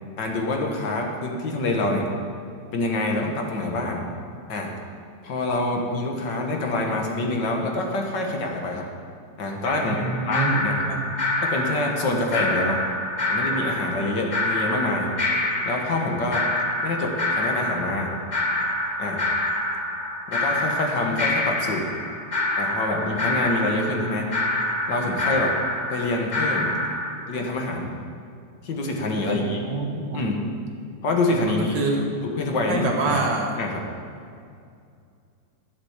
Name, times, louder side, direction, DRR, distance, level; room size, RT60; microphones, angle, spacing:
voice 1, 0.2-2.0 2.7-4.0 4.5-4.7 5.2-8.9 9.4-10.8 11.4-12.8 13.3-15.1 15.7-16.4 16.8-18.1 19.0-19.2 20.3-21.9 22.6-24.3 24.9-25.5 25.9-26.7 27.3-27.9 28.6-29.6 30.1-30.4 31.0-31.8 32.2-33.3 33.6-33.8, left 2 dB, 80° left, 1 dB, 2.2 m, -26 dB
sound 1, 9.6-27.1, left 1 dB, 30° left, 1.0 m, -27 dB
voice 2, 9.9-10.5 10.9-11.1 29.2-30.2 31.5-32.1 32.7-33.6, right 3 dB, 80° right, 1 dB, 2.2 m, -26 dB
11.5 x 8.3 x 7.2 m, 2.3 s
omnidirectional pair, 1.9 m